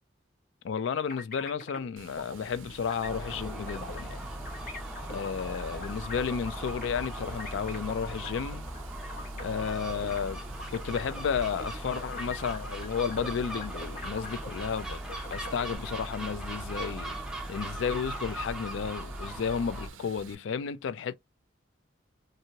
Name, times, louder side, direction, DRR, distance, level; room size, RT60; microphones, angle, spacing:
voice 1, 0.6-4.2 5.1-8.7 9.4-10.4 10.7-15.0 15.3-17.1 17.5-21.2, left 6 dB, 75° left, 0.3 m, -32 dB
sound 1, 1.1-1.9 2.2-2.4 2.9-4.2 4.5-10.2 10.6-14.8 15.1-15.8, left 3 dB, 45° left, 0.8 m, -43 dB
Water, 2.0-20.3, right 5 dB, 85° right, 0.4 m, -50 dB
Gull seagull, 3.0-19.9, right 1 dB, 5° right, 0.5 m, -39 dB
2.8 x 2.6 x 2.7 m
head